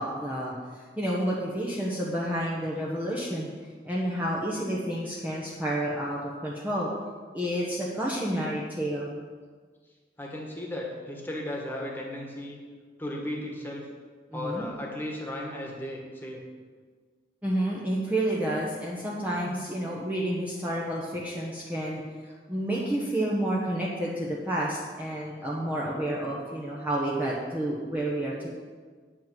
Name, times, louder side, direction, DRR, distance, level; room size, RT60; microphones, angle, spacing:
voice 1, 0.0-3.5 3.8-6.9 7.3-9.2 14.3-14.7 17.4-28.5, right 1 dB, 10° right, -5 dB, 1.1 m, -30 dB
voice 2, 10.2-12.6 13.0-13.8 14.3-16.4, left 1 dB, 10° left, -1 dB, 1.7 m, -35 dB
9.2 x 5.6 x 7.6 m, 1.5 s
head